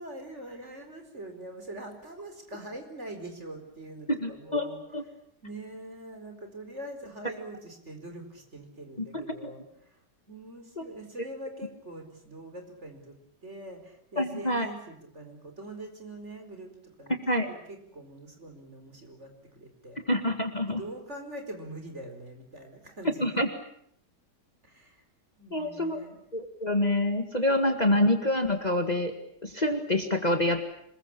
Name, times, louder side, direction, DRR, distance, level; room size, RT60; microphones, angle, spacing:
voice 1, 0.0-4.1 4.4-4.8 5.4-10.0 10.3-13.1 13.4-17.2 17.5-20.0 20.7-23.4 24.6-25.0 25.4-26.2, right 1 dB, 40° right, 5 dB, 4.8 m, -43 dB
voice 2, 4.1-5.0 9.1-9.2 10.8-10.9 11.2-11.3 14.2-14.7 17.3-17.5 20.1-20.8 23.2-23.5 25.5-26.0 26.3-29.1 29.4-30.6, left 1 dB, 25° left, 6 dB, 2.1 m, -26 dB
27.0 x 21.5 x 8.7 m, 0.69 s
omnidirectional pair, 1.8 m